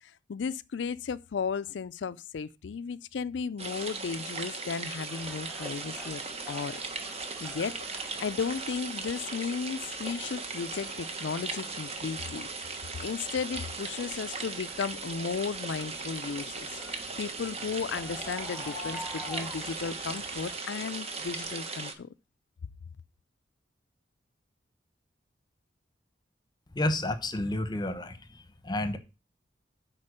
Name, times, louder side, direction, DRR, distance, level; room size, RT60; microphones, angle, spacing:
voice 1, 0.0-6.2 6.5-6.8 7.4-7.8 8.2-12.5 13.0-22.1, left 5 dB, 75° left, 0.4 m, -35 dB
sound 1, 3.6-21.9, right 4 dB, 35° right, 1.3 m, -38 dB
sound 2, 5.1-20.6, left 1 dB, 5° right, 1.9 m, -48 dB
voice 2, 26.7-29.0, left 1 dB, 25° left, 1.0 m, -31 dB
9.7 x 4.4 x 6.5 m
head